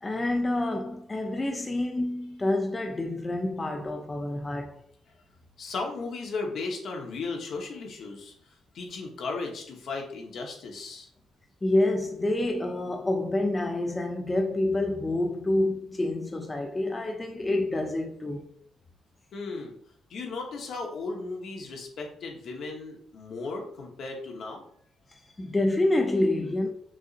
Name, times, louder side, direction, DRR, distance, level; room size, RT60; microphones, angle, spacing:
voice 1, 0.0-4.7 11.6-18.5 25.1-26.7, left 1 dB, 20° left, 0.5 m, -27 dB
voice 2, 5.6-11.1 19.3-19.7 20.1-24.6, left 3 dB, 65° left, 1.1 m, -36 dB
6.0 x 2.7 x 2.5 m
cardioid pair, 90°, 0 cm